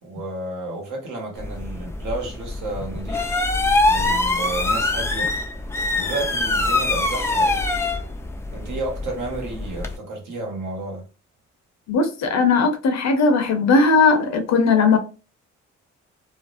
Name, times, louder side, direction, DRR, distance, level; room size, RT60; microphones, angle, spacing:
voice 1, 0.0-3.4 3.9-5.3 6.0-7.6 8.5-11.0, right 2 dB, 70° right, 1.1 m, -31 dB
sound 1, 1.4-10.0, left 2 dB, 10° left, 0.3 m, -24 dB
voice 2, 11.9-15.0, left 4 dB, 60° left, 0.7 m, -18 dB
2.5 x 2.0 x 2.5 m
cardioid pair, 90°, 30 cm